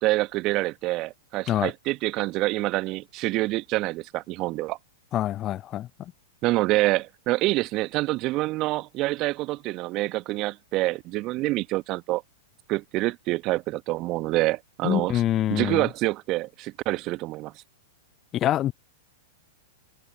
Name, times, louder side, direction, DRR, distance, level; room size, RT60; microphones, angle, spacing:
voice 1, 0.0-4.8 6.4-12.2 12.7-15.2 15.5-17.5, right 19 dB, 35° right, 1.3 m, -26 dB
voice 2, 5.1-5.9 14.8-15.8 18.3-18.7, left 12 dB, 30° left, 0.4 m, -25 dB
figure-of-eight pair, 100°, 0 cm